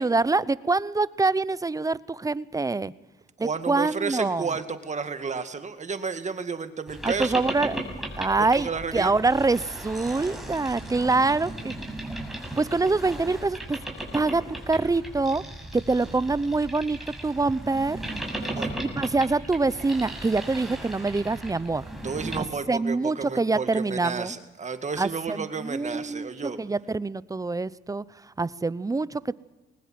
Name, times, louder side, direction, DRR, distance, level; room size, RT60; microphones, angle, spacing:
voice 1, 0.0-2.9 3.4-4.5 7.0-7.9 8.2-11.7 12.6-13.8 14.1-15.4 15.7-18.0 18.8-21.9 22.4-24.3 25.0-26.3 26.6-29.3, right 3 dB, 15° right, 19 dB, 0.7 m, -25 dB
voice 2, 3.4-7.4 8.4-9.1 18.4-18.7 22.0-26.6, right 5 dB, 35° right, 9 dB, 2.1 m, -32 dB
Boat Water vehicle, 6.9-22.4, right 1 dB, ahead, 6.6 m, -36 dB
21.0 x 19.5 x 7.7 m, 1.1 s
cardioid pair, 90°, 20 cm